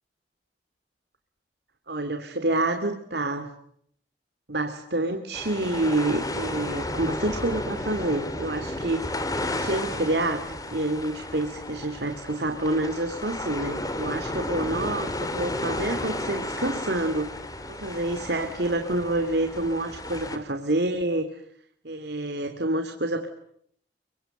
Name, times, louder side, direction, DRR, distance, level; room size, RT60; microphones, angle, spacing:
voice 1, 1.9-3.5 4.5-9.2 9.5-17.4 17.7-21.4 21.8-23.3, right 2 dB, 65° right, 7 dB, 2.4 m, -28 dB
sound 1, 5.3-20.4, left 1 dB, 20° left, 3.2 m, -33 dB
29.5 x 24.5 x 7.8 m, 0.68 s
head